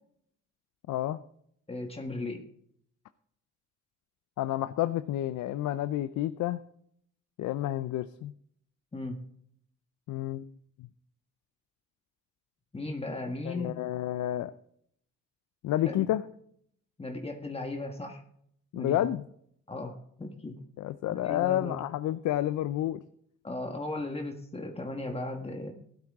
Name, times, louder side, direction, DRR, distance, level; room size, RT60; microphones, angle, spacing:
voice 1, 0.9-1.2 4.4-6.6 7.4-8.3 10.1-10.5 10.8-10.9 13.5-14.5 15.6-16.2 18.7-19.2 20.8-23.0, left 13 dB, 75° left, 13 dB, 0.6 m, -30 dB
voice 2, 1.7-2.5 8.9-9.2 12.7-13.8 15.8-16.0 17.0-18.2 18.7-19.1 19.7-20.6 21.2-21.8 23.4-25.7, left 2 dB, 20° left, 3 dB, 1.6 m, -36 dB
14.5 x 12.0 x 3.7 m, 0.68 s
cardioid pair, 90°, 30 cm